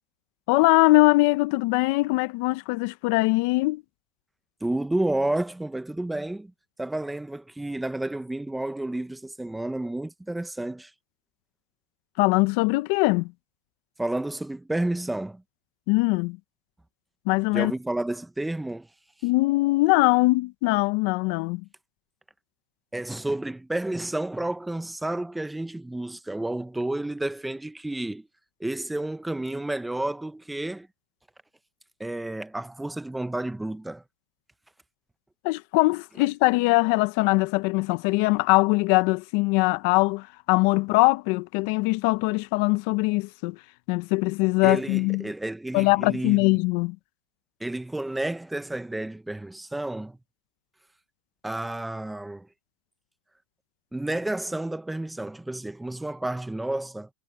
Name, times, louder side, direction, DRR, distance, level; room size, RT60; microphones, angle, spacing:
voice 1, 0.5-3.8 12.2-13.3 15.9-16.4 17.3-17.7 19.2-21.6 35.4-43.6 43.9-45.2 45.7-47.0, left 23 dB, 55° left, 0.7 m, -22 dB
voice 2, 4.6-6.5 6.8-10.9 14.0-15.4 17.5-18.9 22.9-28.3 28.6-30.9 32.0-34.0 44.6-46.5 47.6-50.2 51.4-52.5 53.9-57.1, right 1 dB, 5° right, 0.8 m, -31 dB
supercardioid pair, 150°, 0 cm